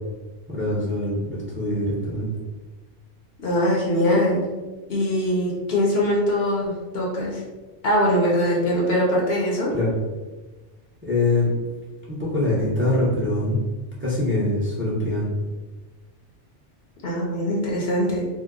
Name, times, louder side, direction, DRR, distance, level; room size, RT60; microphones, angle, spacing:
voice 1, 0.5-2.3 9.7-9.9 11.0-11.5 12.1-13.6 14.0-15.3, left 2 dB, 15° right, -6 dB, 0.6 m, -23 dB
voice 2, 3.4-4.5 4.9-7.4 7.8-9.7 17.0-18.3, equal, 60° left, -3 dB, 0.9 m, -22 dB
2.8 x 2.1 x 3.5 m, 1.2 s
omnidirectional pair, 1.2 m